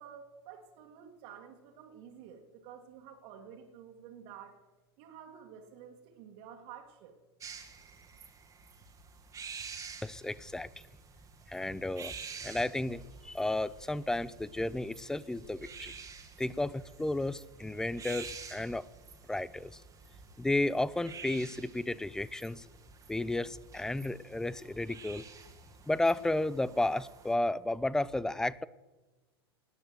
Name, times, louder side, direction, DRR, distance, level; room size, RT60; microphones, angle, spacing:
voice 1, 0.0-4.6 5.0-7.2, right 8 dB, 50° right, -1 dB, 2.0 m, -51 dB
sound 1, 7.4-27.3, right 5 dB, 25° right, 1.7 m, -49 dB
voice 2, 10.0-10.7 11.5-12.1 12.4-15.9 16.4-18.9 19.3-19.8 20.4-22.6 23.1-25.3 25.9-28.7, left 2 dB, 5° left, 20 dB, 0.4 m, -33 dB
19.0 x 6.6 x 7.9 m, 1.2 s
hypercardioid pair, 95°, 13 cm